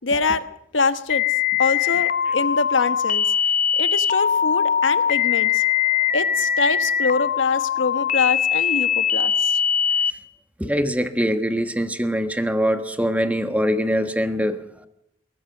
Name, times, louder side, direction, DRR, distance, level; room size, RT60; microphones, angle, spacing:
voice 1, 0.0-0.5 0.7-1.2 1.6-3.3 3.7-5.6 6.1-9.6, left 4 dB, 90° left, 12 dB, 1.2 m, -24 dB
sound 1, 1.1-10.1, left 8 dB, 45° left, 1.2 m, -21 dB
Wind instrument woodwind instrument, 4.3-9.6, right 5 dB, 15° left, 5.3 m, -50 dB
voice 2, 10.6-14.6, equal, 10° right, 9 dB, 1.3 m, -23 dB
22.0 x 18.5 x 6.6 m, 0.76 s
head